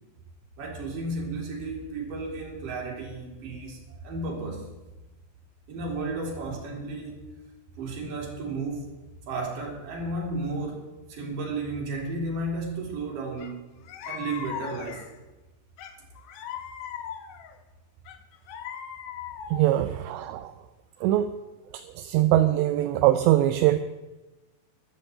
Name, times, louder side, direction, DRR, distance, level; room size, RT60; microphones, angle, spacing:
voice 1, 0.6-4.7 5.7-7.2 7.8-8.9 9.3-13.7 14.0-15.1, right 2 dB, 50° right, -1 dB, 4.3 m, -33 dB
sound 1, 13.4-13.5 13.9-15.2 15.8-17.5 18.1-19.8, left 8 dB, 75° left, 2.0 m, -39 dB
voice 2, 19.5-20.5 21.0-21.4 22.0-23.8, right 13 dB, 85° right, 9 dB, 2.8 m, -22 dB
14.5 x 12.5 x 4.4 m, 1.1 s
omnidirectional pair, 5.1 m